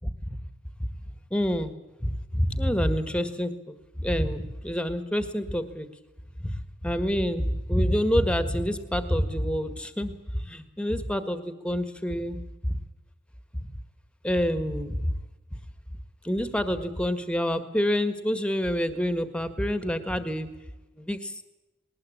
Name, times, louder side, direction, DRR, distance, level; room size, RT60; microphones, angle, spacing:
voice 1, 0.0-0.4 1.3-1.7 2.0-5.9 6.4-6.5 6.8-12.4 12.7-12.8 14.2-15.1 16.2-20.5 21.0-21.4, equal, 5° left, 10 dB, 1.7 m, -27 dB
20.0 x 20.0 x 8.7 m, 1.0 s
head